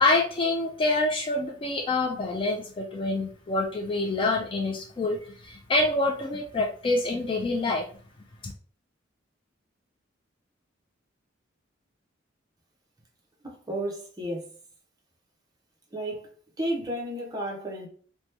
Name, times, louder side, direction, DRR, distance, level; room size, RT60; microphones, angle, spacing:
voice 1, 0.0-7.9 8.4-8.5, left 2 dB, 25° left, 0.3 m, -26 dB
voice 2, 13.4-14.5 15.9-16.3 16.6-17.9, right 1 dB, 20° right, 0.8 m, -32 dB
2.9 x 2.2 x 3.2 m
head